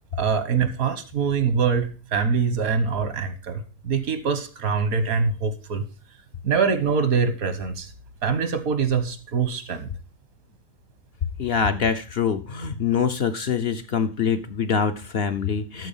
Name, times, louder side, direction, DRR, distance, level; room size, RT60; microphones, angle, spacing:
voice 1, 0.2-5.8 6.4-7.9 8.2-9.9, right 5 dB, 80° right, 10 dB, 1.6 m, -24 dB
voice 2, 11.4-15.9, left 6 dB, 55° left, 8 dB, 0.7 m, -24 dB
12.5 x 4.7 x 5.4 m, 0.35 s
omnidirectional pair, 1.5 m